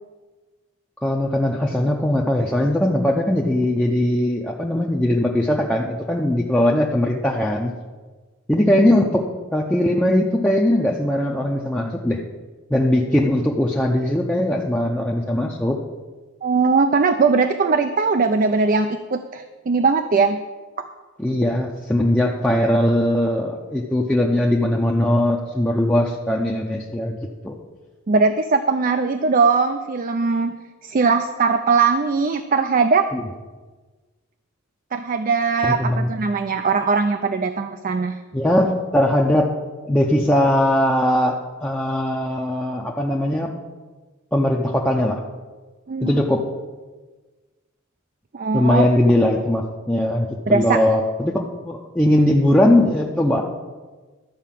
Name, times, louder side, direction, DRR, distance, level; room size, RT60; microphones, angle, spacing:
voice 1, 1.0-7.7 8.5-9.3 9.5-12.2 12.7-15.8 21.2-27.2 27.4-27.5 33.1-33.2 35.6-36.1 38.3-39.5 39.8-43.5 44.3-45.2 46.0-46.4 48.5-53.4, left 1 dB, 5° left, -2 dB, 0.6 m, -20 dB
voice 2, 16.4-20.4 20.8-20.9 28.1-30.5 30.8-33.1 34.9-38.2 45.9-46.2 48.3-48.9 50.5-50.8, right 4 dB, 40° right, 8 dB, 0.4 m, -20 dB
12.0 x 4.7 x 7.5 m, 1.3 s
head